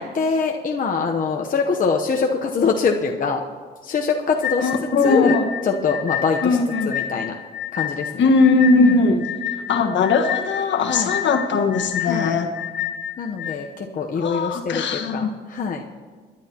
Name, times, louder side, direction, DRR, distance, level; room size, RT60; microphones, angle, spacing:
voice 1, 0.0-3.4 3.8-4.7 5.0-5.4 5.6-6.6 6.9-7.4 7.7-8.2 8.8-9.2 10.9-11.1 12.0-12.3 13.2-15.8, left 5 dB, 45° left, 2 dB, 0.9 m, -23 dB
sound 1, 4.4-13.6, left 10 dB, 85° left, 2.0 m, -29 dB
voice 2, 4.6-5.5 6.4-6.9 8.2-9.2 9.7-12.5 14.1-15.3, left 3 dB, 70° left, 5 dB, 1.4 m, -19 dB
28.5 x 11.0 x 2.9 m, 1.5 s
cardioid pair, 90°, 20 cm